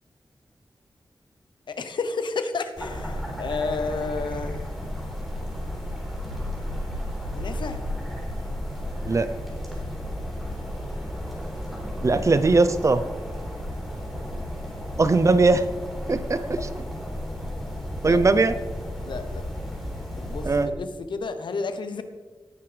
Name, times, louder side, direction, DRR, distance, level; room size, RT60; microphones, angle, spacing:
voice 1, 1.7-4.7 7.3-7.8 18.0-18.2 19.0-19.5 20.2-22.0, left 4 dB, 85° left, 9 dB, 1.0 m, -31 dB
sound 1, 2.7-20.6, equal, ahead, 4.2 m, -33 dB
voice 2, 12.0-13.0 15.0-15.6 16.1-16.6 18.0-18.5 20.4-20.7, right 3 dB, 40° right, 12 dB, 0.7 m, -20 dB
18.5 x 9.5 x 3.4 m, 1.3 s
wide cardioid pair, 95°, 8 cm